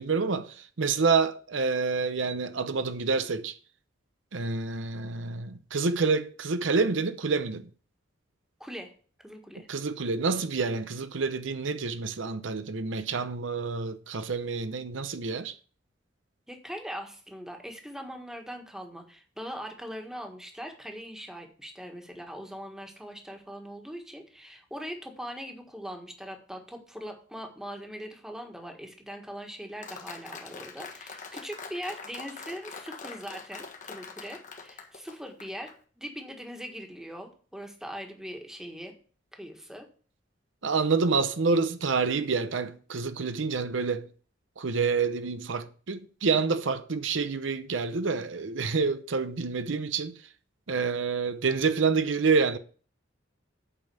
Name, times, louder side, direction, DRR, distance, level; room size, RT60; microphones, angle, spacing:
voice 1, 0.0-3.6 4.3-7.7 9.7-15.5 40.6-44.1 44.6-50.1 50.7-52.6, right 4 dB, 80° right, 0.7 m, -28 dB
voice 2, 8.6-8.9 9.2-9.7 16.5-38.9 39.3-39.9, equal, 5° right, 1.6 m, -41 dB
Applause, 29.8-35.7, left 5 dB, 45° left, 1.5 m, -43 dB
8.5 x 5.5 x 7.1 m
head